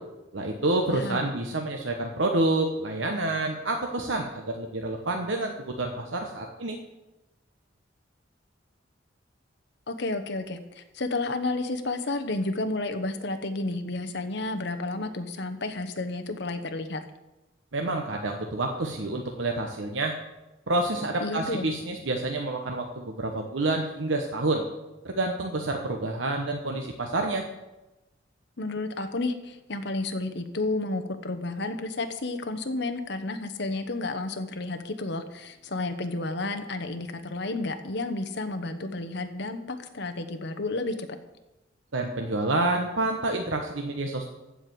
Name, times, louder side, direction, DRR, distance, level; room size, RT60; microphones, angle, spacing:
voice 1, 0.3-6.8 17.7-20.1 20.7-24.7 25.0-27.4 41.9-44.2, right 2 dB, 80° right, 2 dB, 1.0 m, -28 dB
voice 2, 0.9-1.3 9.9-17.0 21.2-21.7 28.6-41.2, left 2 dB, 60° left, 7 dB, 1.1 m, -31 dB
15.0 x 4.9 x 7.8 m, 1.0 s
head